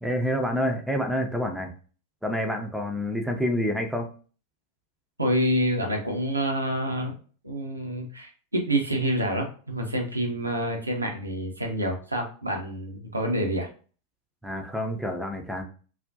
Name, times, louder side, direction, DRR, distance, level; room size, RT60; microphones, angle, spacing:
voice 1, 0.0-1.7 2.2-4.1 14.4-15.6, equal, ahead, 4 dB, 0.4 m, -28 dB
voice 2, 5.2-7.2 7.4-13.7, right 1 dB, 80° right, 2 dB, 0.6 m, -27 dB
2.4 x 2.1 x 2.5 m, 0.39 s
figure-of-eight pair, 90°, 0 cm